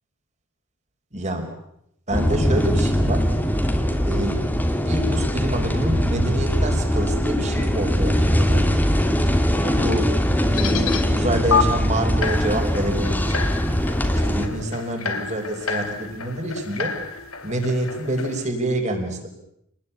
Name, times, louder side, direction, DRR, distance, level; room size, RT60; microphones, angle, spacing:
voice 1, 1.1-1.5 2.1-3.3 4.0-4.4 4.8-8.8 9.6-10.1 10.5-13.4 14.1-16.9 17.4-19.3, right 1 dB, 30° right, 4 dB, 5.0 m, -27 dB
sound 1, 2.1-14.5, equal, 10° left, 2.5 m, -21 dB
sound 2, 10.5-11.0 11.5-11.6 12.2-18.5, left 5 dB, 75° left, 2.6 m, -29 dB
28.0 x 20.5 x 8.5 m, 0.76 s
head